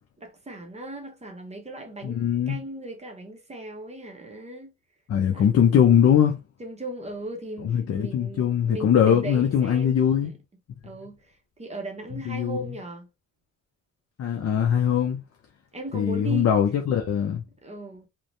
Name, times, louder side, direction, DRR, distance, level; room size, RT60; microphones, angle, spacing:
voice 1, 0.2-2.2 2.5-4.7 5.3-5.9 6.6-10.3 10.8-13.1 15.7-16.5 17.6-18.1, right 2 dB, 20° right, 0.6 m, -38 dB
voice 2, 2.0-2.6 5.1-6.3 7.6-10.3 12.1-12.6 14.2-15.2 15.9-17.4, left 8 dB, 50° left, 0.5 m, -21 dB
3.1 x 2.1 x 2.6 m
cardioid pair, 125°, 31 cm